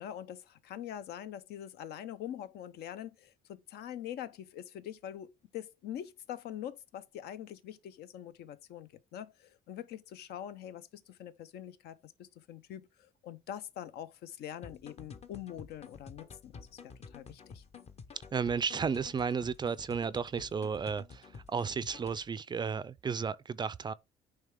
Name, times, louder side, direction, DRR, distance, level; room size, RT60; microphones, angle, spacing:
voice 1, 0.0-17.6, left 10 dB, 70° left, 0.7 m, -44 dB
sound 1, 14.6-22.3, left 5 dB, 40° left, 0.9 m, -50 dB
voice 2, 18.3-23.9, right 6 dB, 25° right, 0.4 m, -33 dB
8.9 x 3.3 x 3.6 m
cardioid pair, 110°, 17 cm